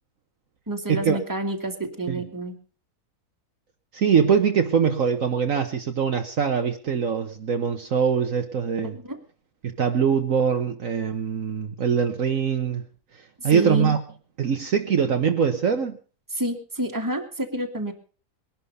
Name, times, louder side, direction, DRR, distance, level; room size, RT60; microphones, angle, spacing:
voice 1, 0.7-2.6 8.9-9.2 13.4-14.0 16.3-17.9, right 1 dB, 10° right, 4 dB, 2.1 m, -29 dB
voice 2, 3.9-9.0 9.6-12.8 13.4-14.0 14.4-16.0, right 6 dB, 60° right, 6 dB, 1.4 m, -23 dB
21.0 x 11.5 x 5.5 m, 0.39 s
omnidirectional pair, 1.7 m